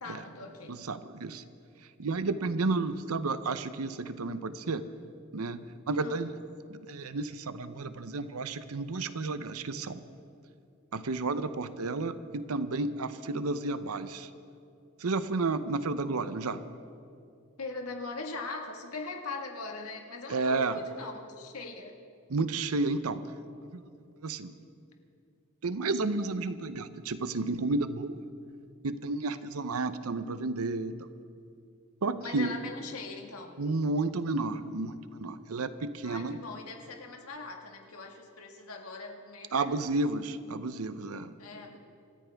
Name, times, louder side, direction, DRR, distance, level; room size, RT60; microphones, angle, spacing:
voice 1, 0.0-0.8 6.0-6.2 17.6-22.0 32.2-33.6 36.0-39.8 41.4-41.8, left 3 dB, 90° left, 3 dB, 1.7 m, -41 dB
voice 2, 0.7-1.4 2.0-4.8 5.3-6.3 6.7-10.0 10.9-14.3 15.0-16.6 20.3-20.8 22.3-23.3 23.7-23.8 24.2-24.5 25.6-28.2 28.8-30.9 32.0-32.5 33.6-34.9 35.2-36.4 39.5-41.3, right 3 dB, 85° right, 12 dB, 0.7 m, -31 dB
26.5 x 14.0 x 3.5 m, 2.5 s
head